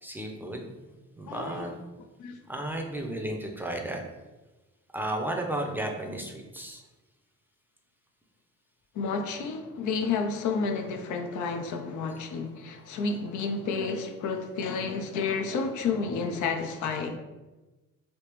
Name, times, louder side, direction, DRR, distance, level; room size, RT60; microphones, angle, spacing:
voice 1, 0.0-0.7 1.2-1.7 2.5-4.0 4.9-6.8, right 1 dB, 5° right, 1 dB, 0.5 m, -33 dB
voice 2, 1.3-1.7 2.2-2.4 8.9-17.2, left 4 dB, 80° left, 5 dB, 0.5 m, -31 dB
3.4 x 2.8 x 3.0 m, 1.1 s
cardioid pair, 90°, 30 cm